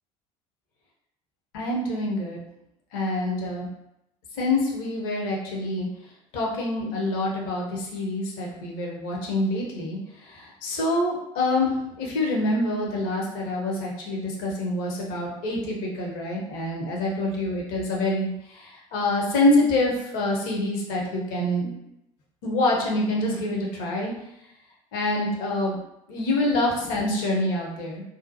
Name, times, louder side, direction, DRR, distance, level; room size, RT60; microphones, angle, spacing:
voice 1, 1.5-2.4 2.9-3.7 4.3-5.9 6.3-11.7 12.0-21.8 22.4-24.1 24.9-25.8 26.1-28.0, left 1 dB, 55° left, -2 dB, 0.8 m, -26 dB
2.6 x 2.1 x 2.7 m, 0.82 s
figure-of-eight pair, 60°, 18 cm